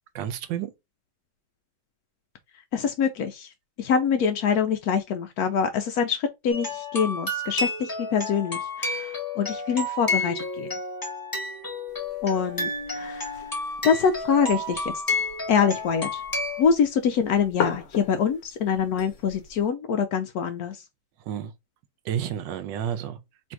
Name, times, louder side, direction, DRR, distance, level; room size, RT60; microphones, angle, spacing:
voice 1, 0.1-0.7 21.3-21.5 22.0-23.2, right 9 dB, 75° right, 1.2 m, -30 dB
voice 2, 2.7-3.5 3.8-10.7 12.2-13.3 13.8-15.2 15.5-16.2 16.6-20.8, left 7 dB, 90° left, 0.8 m, -25 dB
sound 1, 6.5-16.6, left 2 dB, 20° left, 0.6 m, -31 dB
sound 2, 11.9-19.7, left 6 dB, 55° left, 0.8 m, -38 dB
3.2 x 2.6 x 4.5 m
omnidirectional pair, 2.2 m